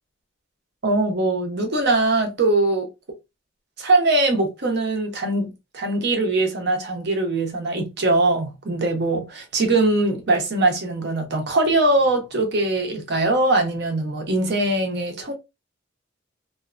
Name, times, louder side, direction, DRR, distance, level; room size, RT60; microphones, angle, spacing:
voice 1, 0.8-2.9 3.8-15.3, right 2 dB, 50° right, 0.7 m, -21 dB
2.6 x 2.2 x 2.4 m
head